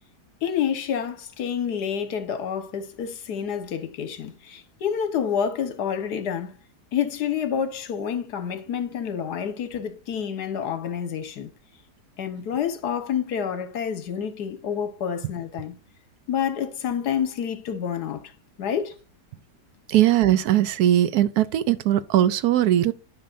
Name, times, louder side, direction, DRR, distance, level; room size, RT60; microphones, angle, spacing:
voice 1, 0.4-6.5 6.9-11.5 12.2-15.7 16.3-18.3 18.6-19.0, left 8 dB, 75° left, 1.6 m, -28 dB
voice 2, 19.9-22.9, right 12 dB, 75° right, 1.0 m, -20 dB
10.5 x 5.5 x 2.5 m
omnidirectional pair, 1.8 m